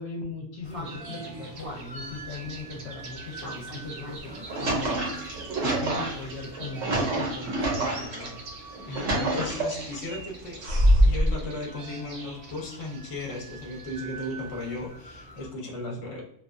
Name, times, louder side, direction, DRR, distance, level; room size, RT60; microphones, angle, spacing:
voice 1, 0.0-5.1 5.6-8.5 9.1-9.5 15.7-16.2, left 3 dB, 65° left, 1 dB, 0.8 m, -39 dB
sound 1, 0.6-15.5, right 2 dB, 45° right, 0.4 m, -45 dB
sound 2, 0.8-15.4, right 3 dB, 65° right, 0.9 m, -46 dB
sound 3, 4.2-8.3 8.7-10.0 10.6-11.3, right 1 dB, 80° right, 1.1 m, -25 dB
voice 2, 8.8-10.6 11.0-16.2, left 2 dB, 40° left, 0 dB, 0.5 m, -36 dB
2.4 x 2.2 x 2.3 m, 0.74 s
omnidirectional pair, 1.3 m